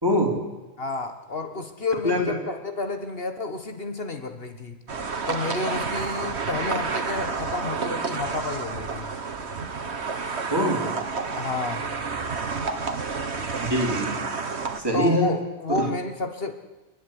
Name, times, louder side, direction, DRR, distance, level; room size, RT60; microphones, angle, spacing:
voice 1, 0.0-0.4 2.0-2.4 10.5-10.9 13.6-14.2 14.8-15.3 15.7-15.9, equal, 20° right, 2 dB, 3.6 m, -23 dB
voice 2, 0.8-4.8 5.3-9.1 11.3-11.9 14.9-16.5, left 3 dB, 60° left, 7 dB, 1.8 m, -30 dB
sound 1, 4.9-14.8, right 4 dB, 90° right, 1.8 m, -30 dB
29.5 x 10.5 x 10.0 m, 1.1 s
omnidirectional pair, 1.1 m